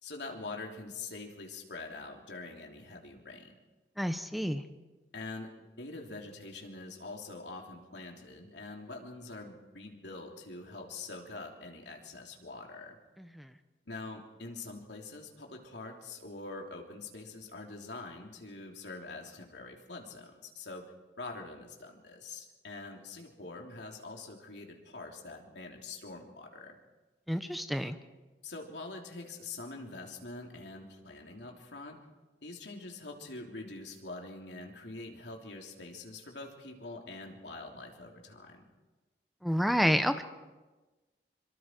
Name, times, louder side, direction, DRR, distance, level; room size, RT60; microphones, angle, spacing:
voice 1, 0.0-3.6 5.1-13.0 13.9-20.8 21.2-26.8 28.4-32.0 32.4-38.7, left 3 dB, 90° left, 1 dB, 3.2 m, -44 dB
voice 2, 4.0-4.6 13.2-13.5 27.3-28.0 39.4-40.2, equal, ahead, 9 dB, 1.0 m, -29 dB
25.0 x 24.5 x 4.6 m, 1.2 s
head